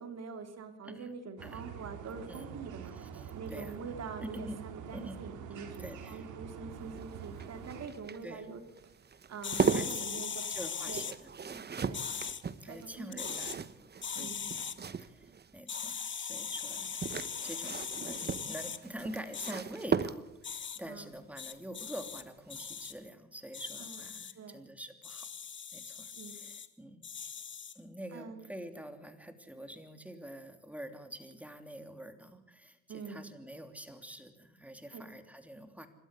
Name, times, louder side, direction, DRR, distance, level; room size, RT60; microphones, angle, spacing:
voice 1, 0.0-8.9 9.3-10.4 10.9-11.0 11.8-12.1 12.7-13.5 14.1-14.4 20.9-21.1 23.8-24.0 24.3-24.6 26.1-26.4 28.1-28.5 32.9-33.2 34.9-35.0, right 5 dB, 60° right, 6 dB, 3.4 m, -45 dB
sound 1, 1.4-7.9, right 7 dB, 85° right, 2.7 m, -46 dB
voice 2, 2.9-3.8 4.2-4.6 4.9-5.2 5.8-6.2 8.2-8.4 9.4-12.0 12.6-13.5 14.1-14.6 15.0-25.3 25.7-27.1 27.7-35.9, right 1 dB, 5° right, 6 dB, 3.1 m, -46 dB
sound 2, 6.7-15.5 16.7-20.6 22.2-22.5 22.8-22.9, right 6 dB, 35° right, 1.1 m, -37 dB
sound 3, 9.4-11.1 11.9-12.4 13.1-13.6 14.0-14.7 15.7-18.8 19.3-19.5 20.4-20.8 21.4-22.2 22.5-22.9 23.5-24.3 25.0-26.7 27.0-27.8, left 7 dB, 40° left, 1.4 m, -40 dB
27.5 x 12.5 x 8.4 m, 0.93 s
cardioid pair, 90°, 30 cm